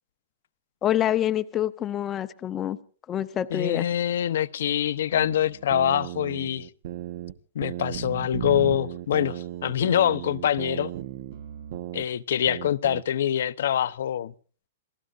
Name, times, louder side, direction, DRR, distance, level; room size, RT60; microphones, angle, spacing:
voice 1, 0.8-2.8 3.1-3.9, left 11 dB, 15° left, 0.7 m, -26 dB
voice 2, 3.5-6.7 7.5-10.9 11.9-14.3, left 10 dB, 65° left, 0.8 m, -25 dB
sound 1, 5.1-7.3 7.6-12.0 12.5-13.0, right 12 dB, 50° right, 1.0 m, -35 dB
28.0 x 19.5 x 2.5 m
hypercardioid pair, 165°, 0 cm